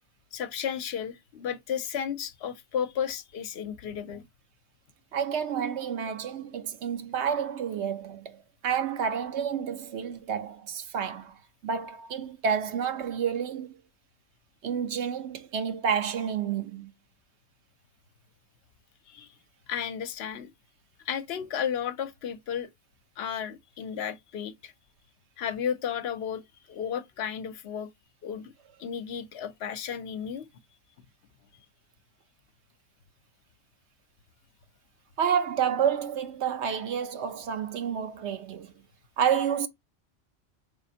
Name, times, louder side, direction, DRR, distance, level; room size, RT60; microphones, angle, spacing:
voice 1, 0.3-4.2 19.1-19.3 19.7-20.5 21.0-22.7 23.2-24.7 25.4-26.4 26.7-27.9 28.2-28.5 28.8-30.5, left 8 dB, 70° left, 0.8 m, -33 dB
voice 2, 5.1-8.4 8.6-11.4 11.6-13.7 14.6-16.9 35.2-38.7 39.2-39.7, right 7 dB, 85° right, 1.0 m, -29 dB
4.2 x 3.4 x 2.7 m
omnidirectional pair, 1.1 m